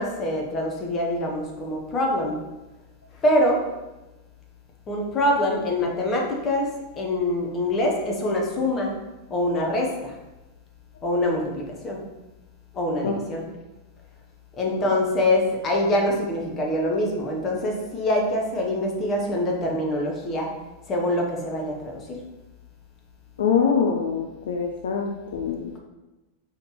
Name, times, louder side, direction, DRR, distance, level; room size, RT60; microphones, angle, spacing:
voice 1, 0.0-2.4 3.2-3.6 4.9-6.7 7.0-9.0 9.3-10.1 11.0-12.0 12.7-13.4 14.6-20.5 20.9-22.2, left 1 dB, 25° left, 0 dB, 0.9 m, -24 dB
voice 2, 23.4-25.7, left 6 dB, 60° left, 2 dB, 0.4 m, -24 dB
4.8 x 3.2 x 3.0 m, 1.0 s
figure-of-eight pair, 90°, 0 cm